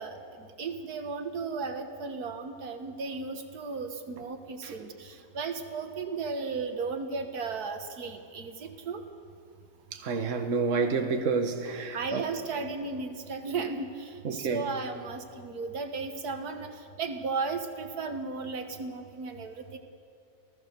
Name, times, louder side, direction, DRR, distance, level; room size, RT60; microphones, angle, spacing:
voice 1, 0.0-9.0 11.9-19.8, right 4 dB, 85° right, 1.9 m, -35 dB
voice 2, 9.9-12.2 14.2-14.6, right 4 dB, 55° right, 1.6 m, -29 dB
28.5 x 16.5 x 6.7 m
omnidirectional pair, 1.6 m